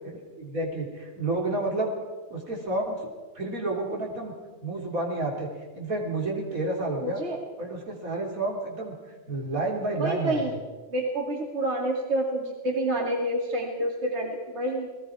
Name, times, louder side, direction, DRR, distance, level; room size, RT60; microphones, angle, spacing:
voice 1, 0.1-2.0 2.3-3.1 3.3-4.3 4.6-5.5 5.7-7.2 7.6-8.9 9.3-10.5, right 2 dB, 80° right, -1 dB, 3.8 m, -30 dB
voice 2, 7.0-7.4 10.0-10.5 10.9-14.9, right 1 dB, 50° right, 0 dB, 2.6 m, -28 dB
29.0 x 19.0 x 4.8 m, 1.4 s
omnidirectional pair, 1.4 m